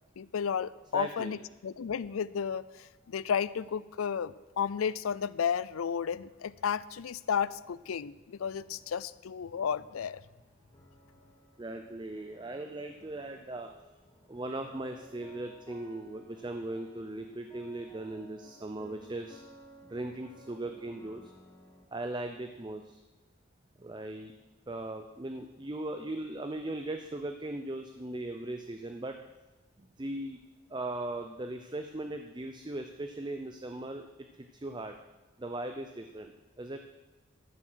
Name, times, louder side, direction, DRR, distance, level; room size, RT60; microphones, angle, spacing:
voice 1, 0.2-10.2, left 7 dB, 85° left, 19 dB, 0.4 m, -33 dB
voice 2, 0.9-1.4 11.6-13.7 14.3-19.4 19.9-21.3 21.9-23.0 23.8-24.3 24.7-29.2 29.8-30.4 30.7-34.9 35.4-36.8, right 2 dB, 20° right, 6 dB, 0.5 m, -39 dB
sound 1, 7.3-21.9, equal, 20° left, 1.0 m, -58 dB
13.5 x 7.5 x 6.3 m, 1.2 s
head